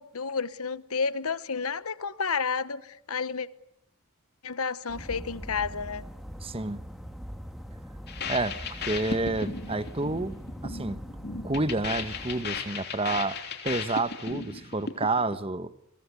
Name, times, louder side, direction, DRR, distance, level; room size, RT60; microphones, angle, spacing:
voice 1, 0.0-3.5 4.4-6.0, left 5 dB, 80° left, 1.2 m, -31 dB
sound 1, 4.9-12.4, equal, ahead, 1.8 m, -42 dB
voice 2, 6.4-6.8 8.3-10.4 10.6-11.0 11.4-13.4 13.6-15.7, right 2 dB, 25° right, 1.0 m, -29 dB
sound 2, 8.1-15.4, left 4 dB, 45° left, 3.3 m, -36 dB
29.0 x 23.0 x 8.3 m
head